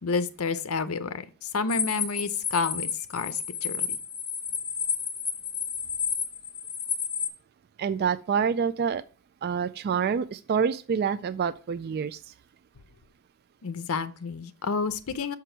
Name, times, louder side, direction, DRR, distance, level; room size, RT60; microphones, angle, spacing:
voice 1, 0.0-4.0 13.6-15.4, left 4 dB, 70° left, 0.7 m, -30 dB
sound 1, 1.7-7.3, left 7 dB, 20° left, 0.8 m, -31 dB
voice 2, 7.8-9.0 9.4-12.3, right 6 dB, 45° right, 0.3 m, -27 dB
6.0 x 5.7 x 4.5 m
head